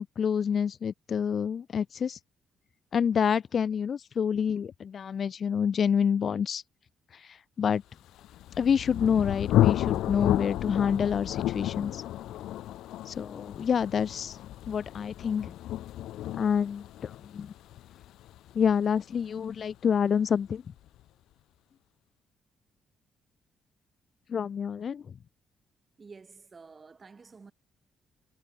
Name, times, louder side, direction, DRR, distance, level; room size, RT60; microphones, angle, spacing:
voice 1, 0.0-2.2 2.9-6.6 7.1-7.8 8.6-12.0 13.1-14.4 14.7-15.5 16.4-17.5 18.5-20.6 24.3-25.1, left 7 dB, 50° left, 0.6 m, -28 dB
Thunder, 8.2-19.7, left 14 dB, 85° left, 1.3 m, -31 dB
voice 2, 26.0-27.5, right 4 dB, 35° right, 4.3 m, -50 dB
cardioid pair, 90°, 0 cm